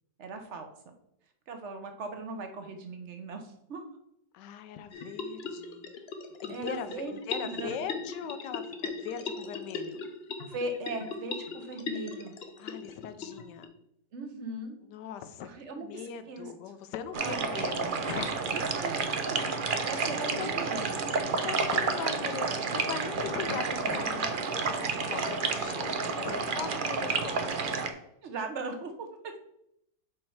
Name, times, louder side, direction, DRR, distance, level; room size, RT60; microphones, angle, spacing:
voice 1, 0.2-0.7 1.5-3.8 6.5-7.7 10.5-12.3 14.1-14.8 15.4-15.9 16.3-16.5 17.2-17.5 18.5-19.0 19.3-19.4 19.9-20.9 28.2-29.1, right 3 dB, 50° right, 6 dB, 1.0 m, -38 dB
voice 2, 4.3-5.9 6.3-10.0 12.6-13.7 14.9-18.3 19.8-20.1 20.4-20.5 21.3-27.8, left 8 dB, 80° left, 11 dB, 1.3 m, -40 dB
sound 1, 4.9-13.7, left 4 dB, 50° left, 0.7 m, -39 dB
sound 2, 17.1-27.9, right 4 dB, 80° right, 0.4 m, -30 dB
5.4 x 4.4 x 5.7 m, 0.76 s
omnidirectional pair, 1.8 m